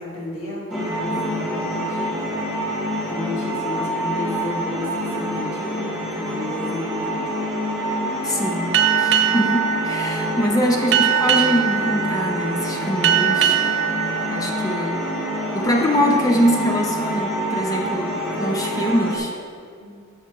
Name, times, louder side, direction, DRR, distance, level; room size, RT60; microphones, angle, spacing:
voice 1, 0.0-2.3 3.1-7.3 19.8-20.0, left 1 dB, 85° left, -5 dB, 1.9 m, -33 dB
sound 1, 0.7-19.2, equal, ahead, 1.0 m, -27 dB
voice 2, 8.2-13.6 14.3-15.0 15.5-19.3, equal, 15° left, 0 dB, 0.6 m, -23 dB
Boat Water vehicle, 8.7-15.8, right 9 dB, 55° right, 0.4 m, -22 dB
9.9 x 5.8 x 3.0 m, 2.2 s
head